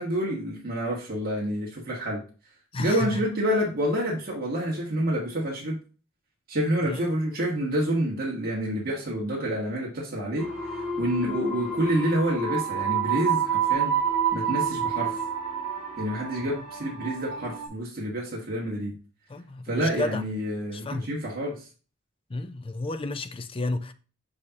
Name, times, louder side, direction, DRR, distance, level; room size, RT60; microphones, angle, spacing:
voice 1, 0.0-2.2 2.8-5.8 6.5-10.5 10.7-13.9 14.3-15.2 16.0-18.9 19.7-21.7, equal, 50° right, 1.4 m, -28 dB
voice 2, 2.7-3.1 6.9-7.1 19.3-20.2 20.7-21.1 22.3-23.9, left 2 dB, 25° left, 0.5 m, -31 dB
sound 1, 10.4-17.7, right 6 dB, 5° right, 2.9 m, -28 dB
6.4 x 5.6 x 2.8 m
head